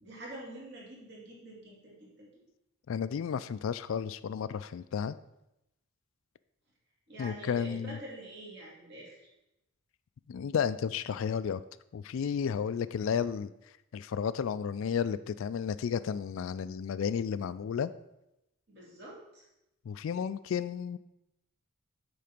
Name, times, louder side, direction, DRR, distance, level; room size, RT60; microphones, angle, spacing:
voice 1, 0.0-2.3 7.1-9.2 18.7-19.4, right 1 dB, 50° right, -4 dB, 2.6 m, -46 dB
voice 2, 2.9-5.2 7.2-8.0 10.3-11.6 11.9-13.5 13.9-17.9 19.9-21.0, left 7 dB, 65° left, 15 dB, 0.3 m, -32 dB
8.4 x 3.9 x 5.9 m, 0.88 s
head